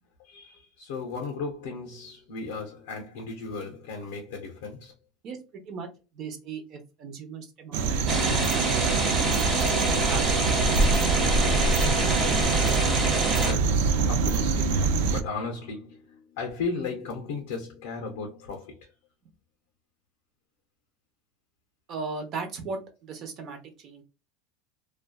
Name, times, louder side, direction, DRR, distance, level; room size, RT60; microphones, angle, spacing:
voice 1, 0.2-4.9 13.4-14.8 15.1-16.0 16.4-18.9, left 4 dB, 85° left, 0.6 m, -35 dB
voice 2, 6.1-11.1 11.4-12.3 21.9-24.0, right 4 dB, 45° right, 0.7 m, -38 dB
sound 1, 7.7-15.2, right 4 dB, 75° right, 0.3 m, -25 dB
sound 2, 8.1-13.5, right 2 dB, 25° right, 1.0 m, -27 dB
sound 3, 14.6-16.4, left 1 dB, 15° left, 0.6 m, -36 dB
2.5 x 2.2 x 2.2 m
supercardioid pair, 140°, 0 cm